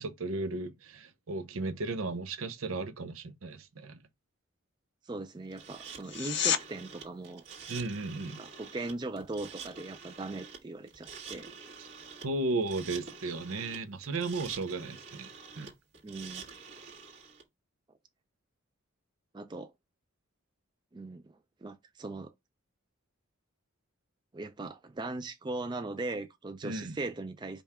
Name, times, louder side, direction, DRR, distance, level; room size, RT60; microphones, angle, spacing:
voice 1, 0.0-4.0 7.7-8.4 11.8-11.9 12.2-15.7 26.6-27.0, right 3 dB, 75° right, 0.6 m, -35 dB
voice 2, 5.1-7.4 8.4-11.5 16.0-16.4 19.3-19.7 20.9-21.3 21.6-22.3 24.3-27.6, right 2 dB, 20° right, 0.3 m, -39 dB
sound 1, 5.5-17.4, right 6 dB, 55° right, 1.5 m, -47 dB
sound 2, 6.0-6.6 18.0-18.1, left 10 dB, 50° left, 0.5 m, -29 dB
5.3 x 2.3 x 4.2 m
head